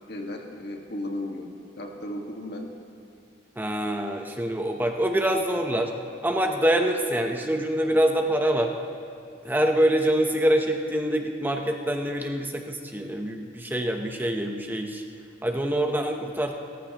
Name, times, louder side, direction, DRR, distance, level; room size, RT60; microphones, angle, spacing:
voice 1, 0.1-2.7, left 1 dB, 60° left, 2 dB, 1.7 m, -35 dB
voice 2, 3.6-5.9 6.2-8.7 9.4-15.0 15.4-16.5, right 1 dB, 10° right, 3 dB, 0.8 m, -25 dB
29.5 x 14.0 x 3.0 m, 2.4 s
head